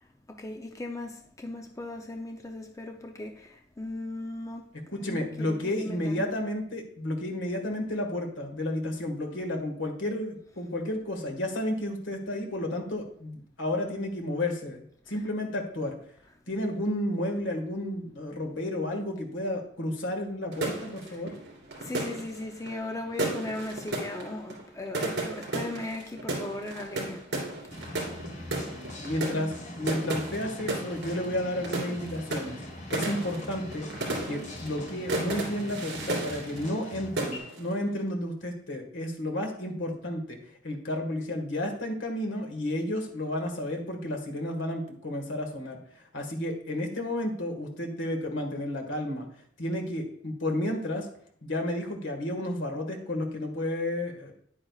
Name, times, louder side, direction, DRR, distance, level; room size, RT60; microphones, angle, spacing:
voice 1, 0.4-6.2 21.8-27.2, left 2 dB, 15° left, 0.6 m, -38 dB
voice 2, 4.9-15.9 16.5-21.4 29.0-32.6 32.9-33.9 34.2-40.4 40.6-49.3 49.6-51.1 51.4-54.3, left 1 dB, 75° left, 1.7 m, -32 dB
sound 1, 20.5-36.9 37.2-37.7, right 2 dB, 60° right, 3.0 m, -34 dB
sound 2, 27.7-37.4, left 1 dB, 40° left, 1.5 m, -42 dB
10.0 x 8.9 x 2.4 m
head